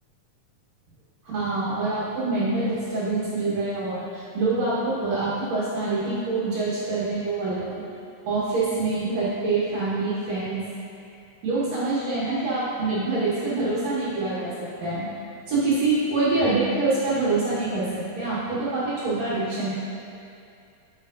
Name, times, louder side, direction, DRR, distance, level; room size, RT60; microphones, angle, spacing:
voice 1, 1.2-7.8 8.3-10.6 11.4-14.5 14.8-15.0 15.5-19.7, right 3 dB, 65° right, -11 dB, 2.6 m, -25 dB
9.0 x 7.3 x 2.6 m, 2.6 s
omnidirectional pair, 3.4 m